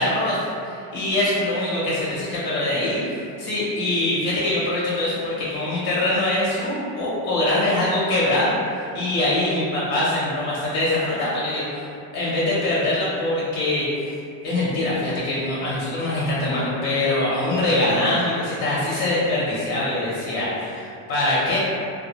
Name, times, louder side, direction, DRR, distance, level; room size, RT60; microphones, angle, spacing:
voice 1, 0.0-11.8 12.1-13.9 14.4-21.6, left 1 dB, 55° left, -8 dB, 0.7 m, -23 dB
2.2 x 2.1 x 2.8 m, 2.5 s
cardioid pair, 120°, 44 cm